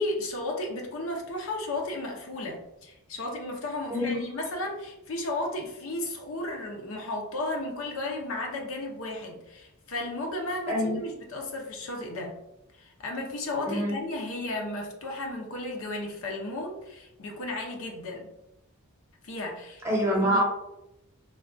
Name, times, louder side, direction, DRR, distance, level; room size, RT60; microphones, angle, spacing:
voice 1, 0.0-12.3 12.7-18.3 19.2-19.8 20.2-20.4, left 2 dB, 65° left, 1 dB, 0.5 m, -34 dB
voice 2, 3.9-4.2 10.7-11.0 13.7-14.0 19.8-20.4, equal, 10° right, -5 dB, 0.9 m, -25 dB
3.4 x 2.2 x 2.5 m, 0.87 s
head